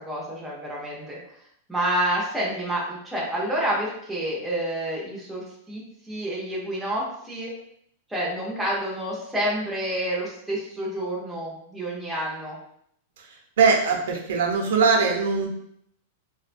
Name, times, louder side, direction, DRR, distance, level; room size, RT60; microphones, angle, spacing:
voice 1, 0.0-1.2 1.7-7.5 8.1-12.6, right 1 dB, ahead, -6 dB, 0.5 m, -29 dB
voice 2, 13.6-15.5, right 5 dB, 65° right, 1 dB, 0.6 m, -21 dB
3.5 x 2.1 x 2.5 m, 0.70 s
supercardioid pair, 175°, 0 cm